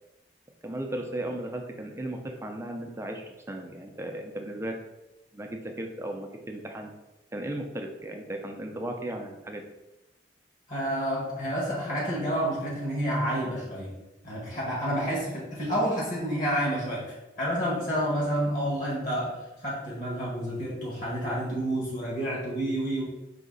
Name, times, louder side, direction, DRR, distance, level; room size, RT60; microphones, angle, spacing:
voice 1, 0.6-4.8 5.3-6.9 7.3-9.6, right 1 dB, 15° right, 3 dB, 0.4 m, -36 dB
voice 2, 10.7-13.9 14.2-19.3 19.6-23.0, equal, 50° left, -5 dB, 1.6 m, -29 dB
4.9 x 2.7 x 3.9 m, 0.97 s
head